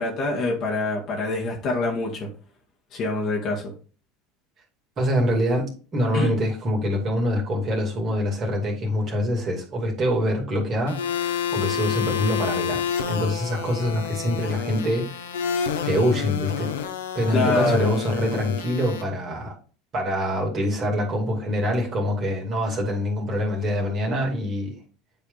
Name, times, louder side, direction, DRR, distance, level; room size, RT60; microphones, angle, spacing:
voice 1, 0.0-2.3 2.9-3.7 6.1-6.3 17.3-17.9, left 2 dB, 50° left, -1 dB, 1.7 m, -25 dB
voice 2, 5.0-12.8 13.1-15.1 15.3-16.7 17.1-19.5 19.9-24.8, equal, 40° right, -1 dB, 2.5 m, -25 dB
sound 1, 10.9-19.0, left 8 dB, 85° left, 0.8 m, -29 dB
9.0 x 3.5 x 3.9 m, 0.38 s
hypercardioid pair, 80°, 0 cm